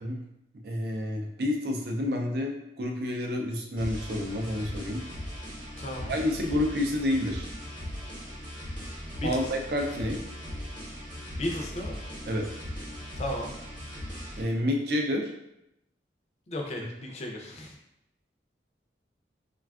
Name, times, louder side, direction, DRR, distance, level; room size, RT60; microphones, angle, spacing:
voice 1, 0.6-5.0 6.1-7.5 9.2-10.2 12.3-12.5 14.4-15.3, left 1 dB, 55° right, 2 dB, 0.4 m, -29 dB
sound 1, 3.8-14.4, equal, 25° right, 0.8 m, -39 dB
voice 2, 5.8-6.1 9.2-9.4 11.4-12.0 13.2-13.5 16.5-17.8, left 1 dB, 35° left, 1 dB, 0.4 m, -34 dB
3.3 x 2.3 x 2.3 m, 0.83 s
head